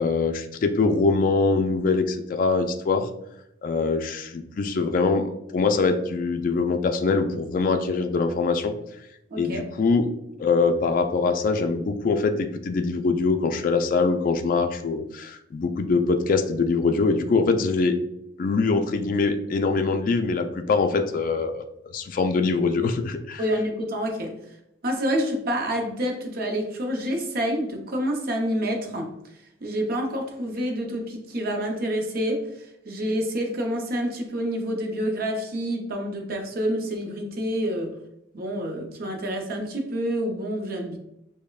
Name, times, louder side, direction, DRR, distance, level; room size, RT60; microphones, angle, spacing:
voice 1, 0.0-3.1 3.6-8.7 9.4-10.1 10.4-17.9 18.4-21.6 21.9-23.4, left 4 dB, 50° left, 6 dB, 0.3 m, -23 dB
voice 2, 9.3-9.7 23.4-24.4 24.8-29.1 29.6-32.5 32.9-37.9 38.3-41.0, equal, 55° right, 3 dB, 0.6 m, -28 dB
5.2 x 2.1 x 2.3 m, 0.82 s
head